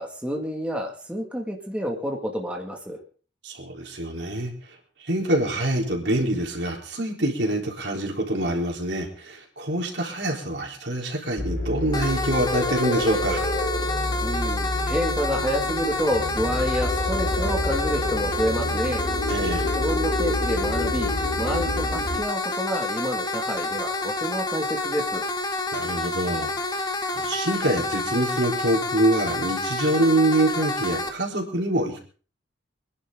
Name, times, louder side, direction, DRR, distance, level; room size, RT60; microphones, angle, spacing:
voice 1, 0.0-3.0 14.2-19.0 19.7-21.1 21.4-25.2, equal, 5° right, 0 dB, 2.2 m, -29 dB
voice 2, 3.4-4.5 5.0-13.4 19.3-19.7 25.7-26.9 27.1-32.0, right 1 dB, 70° right, 1 dB, 3.9 m, -25 dB
sound 1, 11.4-22.2, left 1 dB, 60° left, 4.0 m, -28 dB
sound 2, 11.9-31.1, left 2 dB, 20° left, 1.6 m, -28 dB
25.0 x 11.0 x 3.9 m, 0.40 s
head